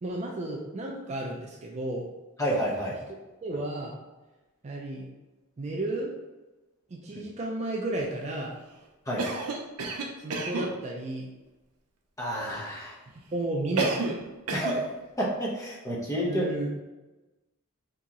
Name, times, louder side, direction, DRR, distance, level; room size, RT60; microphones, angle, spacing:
voice 1, 0.0-2.0 3.4-3.9 4.6-5.1 5.6-6.1 6.9-8.5 10.2-11.3 13.3-13.9 16.3-16.7, right 1 dB, 30° right, -1 dB, 0.4 m, -32 dB
voice 2, 2.4-3.0 9.1-9.2 12.2-13.0 14.5-14.8 15.2-16.5, equal, 15° left, -4 dB, 0.8 m, -29 dB
Cough, 9.2-10.7 13.8-14.2 14.5-14.8, right 3 dB, 80° right, 0.5 m, -30 dB
2.9 x 2.8 x 3.6 m, 1.1 s
head